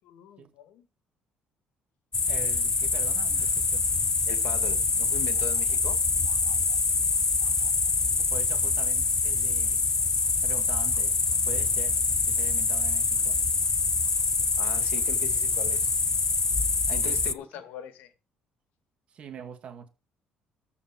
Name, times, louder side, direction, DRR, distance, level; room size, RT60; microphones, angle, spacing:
voice 1, 0.1-0.9 4.3-6.0 14.6-15.9 16.9-18.1, left 9 dB, 80° left, 2.0 m, -40 dB
sound 1, 2.1-17.3, left 4 dB, 20° left, 0.6 m, -25 dB
voice 2, 2.3-3.8 8.2-9.8 10.4-12.0 12.3-13.4 17.0-17.2 17.5-17.6 19.1-19.9, right 6 dB, 45° right, 2.1 m, -44 dB
13.5 x 4.8 x 7.5 m
cardioid pair, 150°, 3 cm